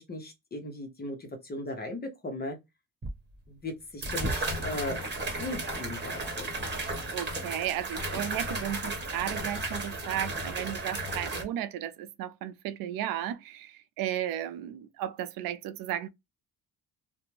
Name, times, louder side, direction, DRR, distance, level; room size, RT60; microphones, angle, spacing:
voice 1, 0.0-2.6 3.5-5.0 5.4-6.5, left 1 dB, 30° left, 0.8 m, -37 dB
sound 1, 3.0-3.1 4.0-11.4, right 2 dB, 30° right, 1.1 m, -34 dB
voice 2, 7.1-16.1, right 11 dB, 80° right, 0.5 m, -34 dB
2.5 x 2.2 x 3.0 m
cardioid pair, 95°, 34 cm